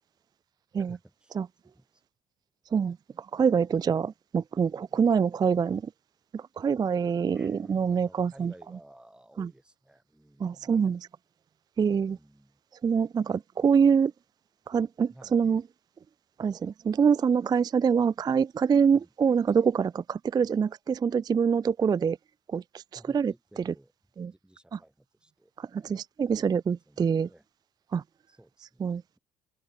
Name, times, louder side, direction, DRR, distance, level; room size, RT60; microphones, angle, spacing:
voice 1, 0.8-1.4 1.6-2.0 7.3-10.7 11.8-12.6 15.1-15.4 18.9-19.1 22.9-23.9 24.2-25.8 26.9-27.5 28.3-28.9, right 1 dB, 5° right, 4.4 m, -55 dB
voice 2, 2.7-5.8 6.3-8.5 9.4-9.5 10.4-11.1 11.8-12.2 12.8-14.1 14.7-15.6 16.4-22.2 22.5-22.6 23.1-23.3 23.7-23.8 24.2-24.3 24.7-24.8 25.6-27.3 27.9-28.0 28.8-29.0, right 6 dB, 25° right, 0.3 m, -25 dB
open air
cardioid pair, 110°, 17 cm